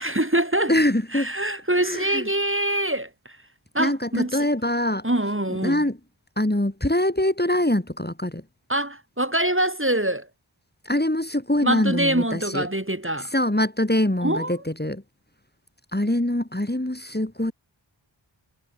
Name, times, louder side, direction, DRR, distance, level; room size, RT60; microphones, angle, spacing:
voice 1, 0.0-0.7 1.1-3.4 3.7-4.3 5.0-5.8 8.7-10.3 11.6-13.3 14.2-14.5, right 1 dB, 25° right, 4.5 m, -24 dB
voice 2, 0.7-1.3 1.8-2.3 3.8-5.1 5.5-6.0 6.4-8.4 10.8-12.7 13.2-15.0 15.9-17.5, left 1 dB, 20° left, 4.0 m, -24 dB
wide cardioid pair, 45°, 48 cm